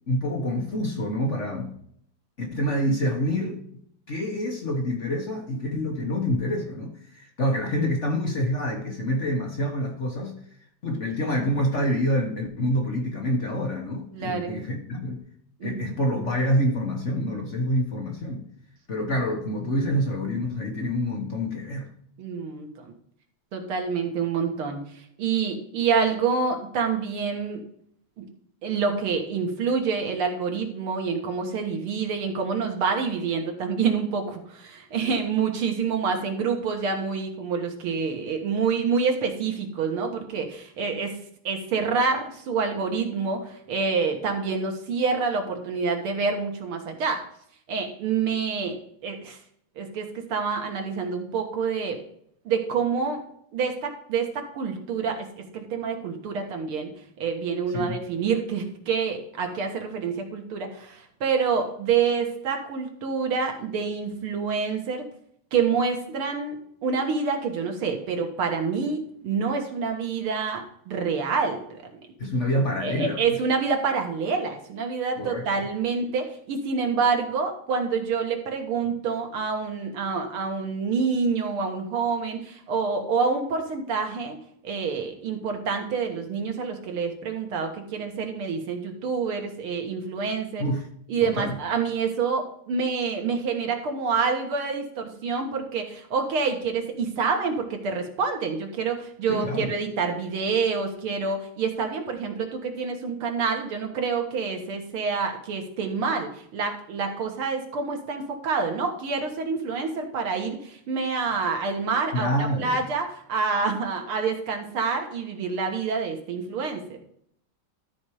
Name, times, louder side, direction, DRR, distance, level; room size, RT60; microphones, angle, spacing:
voice 1, 0.0-1.7 2.4-3.6 4.1-10.4 10.8-15.2 15.6-18.5 18.9-21.9 57.7-58.0 72.2-73.4 75.2-75.5 90.6-90.9 91.2-91.6 99.3-99.7 112.1-112.7, equal, 40° left, 2 dB, 1.3 m, -27 dB
voice 2, 14.1-14.6 15.6-15.9 22.2-22.9 23.5-27.6 28.2-28.3 28.6-41.1 41.4-47.2 47.7-49.4 49.8-52.0 52.5-53.2 53.5-55.3 55.5-56.9 57.2-65.1 65.5-71.8 72.8-84.4 84.6-90.6 91.1-117.0, right 5 dB, 80° right, 3 dB, 2.4 m, -27 dB
13.0 x 4.4 x 4.8 m, 0.68 s
omnidirectional pair, 2.3 m